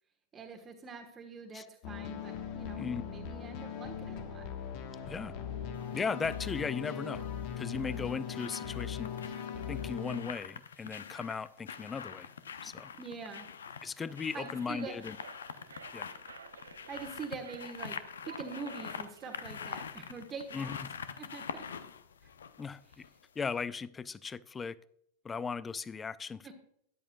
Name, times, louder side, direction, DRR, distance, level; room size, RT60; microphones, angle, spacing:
voice 1, 0.3-4.5 12.9-13.5 14.3-14.9 16.9-18.0 18.2-20.7 21.1-21.7 22.2-22.3 26.4-26.5, right 5 dB, 20° right, 3 dB, 1.3 m, -44 dB
sound 1, 1.8-10.3, left 7 dB, 45° left, 1.4 m, -39 dB
sound 2, 5.7-6.5 7.7-23.2 23.6-23.7, left 7 dB, 65° left, 0.7 m, -45 dB
voice 2, 5.9-7.2 7.6-9.1 9.7-12.3 12.6-12.9 13.8-15.2 15.9-16.1 20.5-20.9 22.6-23.0 23.4-24.8 25.2-26.5, left 5 dB, 15° left, 19 dB, 0.4 m, -37 dB
sound 3, 13.8-20.1, right 6 dB, 70° right, 0.8 m, -53 dB
13.5 x 10.5 x 2.3 m, 0.70 s
figure-of-eight pair, 90°, 0 cm